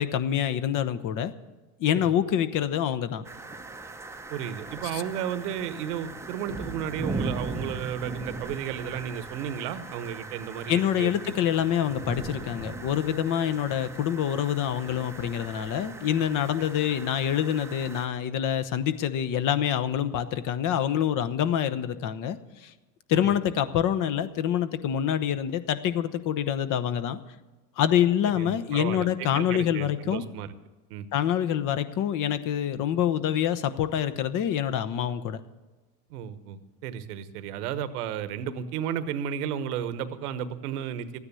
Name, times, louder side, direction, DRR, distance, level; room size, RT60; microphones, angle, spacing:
voice 1, 0.0-1.3 1.8-3.2 4.9-5.0 10.7-22.7 23.1-27.2 27.8-30.2 31.1-35.4, left 10 dB, 45° left, 13 dB, 1.0 m, -26 dB
sound 1, 3.2-18.1, right 2 dB, 5° right, 0.7 m, -39 dB
voice 2, 4.3-11.1 23.1-23.3 28.3-30.5 30.9-31.1 36.1-41.2, right 9 dB, 75° right, 12 dB, 1.2 m, -33 dB
13.0 x 9.7 x 6.9 m, 1.2 s
supercardioid pair, 105°, 45 cm